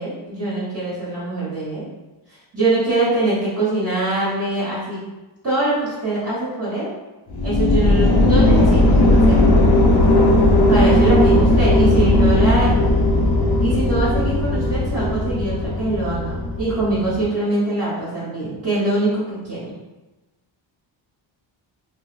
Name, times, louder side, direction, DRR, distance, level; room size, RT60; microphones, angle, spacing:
voice 1, 0.0-1.8 2.3-5.0 5.4-6.9 7.4-9.6 10.4-12.7 13.6-19.7, right 2 dB, 30° right, -11 dB, 1.3 m, -23 dB
sound 1, 7.3-17.2, left 1 dB, 50° left, 0.7 m, -16 dB
3.2 x 2.1 x 2.6 m, 1.1 s
cardioid pair, 100°, 48 cm